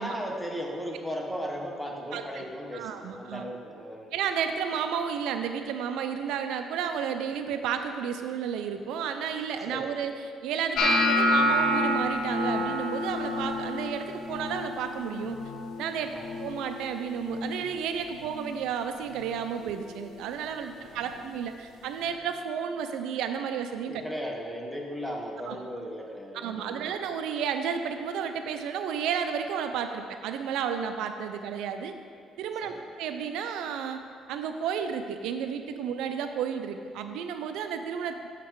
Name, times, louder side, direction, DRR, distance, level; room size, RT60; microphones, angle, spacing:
voice 1, 0.0-4.1 9.7-9.9 16.0-16.3 20.7-21.1 23.9-26.9 32.6-32.8, equal, ahead, 0 dB, 1.1 m, -36 dB
voice 2, 2.1-2.4 2.7-3.4 4.1-15.4 15.8-16.1 16.4-24.0 25.5-25.6 26.3-31.9 32.4-34.0 34.3-38.3, right 7 dB, 85° right, 7 dB, 0.4 m, -32 dB
sound 1, 10.8-16.9 17.1-17.6 18.0-18.5 19.2-19.4 21.1-21.2, left 1 dB, 75° left, 0.9 m, -28 dB
7.3 x 5.8 x 4.6 m, 2.1 s
cardioid pair, 90°, 0 cm